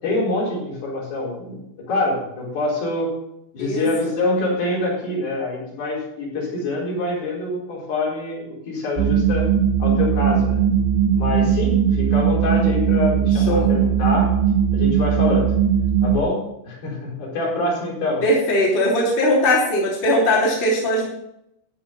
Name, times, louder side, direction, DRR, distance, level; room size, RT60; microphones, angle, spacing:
voice 1, 0.0-3.1 3.5-9.5 9.8-10.6 11.1-14.4 14.7-15.5 16.0-18.2, left 2 dB, 50° left, -4 dB, 6.3 m, -25 dB
sound 1, 9.0-16.2, right 8 dB, 80° right, 2.9 m, -19 dB
voice 2, 13.3-13.7 18.2-21.1, left 1 dB, 25° left, -4 dB, 3.3 m, -19 dB
13.0 x 9.2 x 5.7 m, 0.81 s
omnidirectional pair, 5.4 m